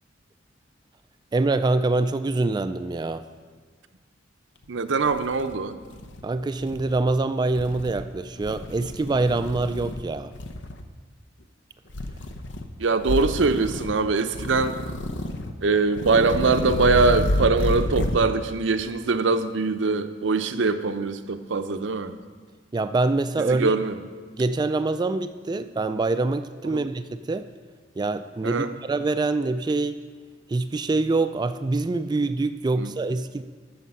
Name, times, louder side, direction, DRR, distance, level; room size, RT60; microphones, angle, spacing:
voice 1, 1.3-3.3 6.2-10.3 22.7-23.8 24.4-27.5 28.0-30.0 30.5-33.4, right 3 dB, 25° right, 11 dB, 0.3 m, -25 dB
sound 1, 4.6-4.7 5.1-6.2 6.6-7.0 7.5-8.1 8.4-10.0 10.3-10.8 11.9-12.7 13.0-14.0 14.3-15.5 15.9-18.3, left 1 dB, 75° left, 0.8 m, -30 dB
voice 2, 4.7-5.7 12.8-14.8 15.6-22.1 23.5-23.9 26.7-26.8 28.4-28.7 32.8-32.9, right 4 dB, 85° right, 9 dB, 0.7 m, -23 dB
13.5 x 6.6 x 5.5 m, 1.5 s
head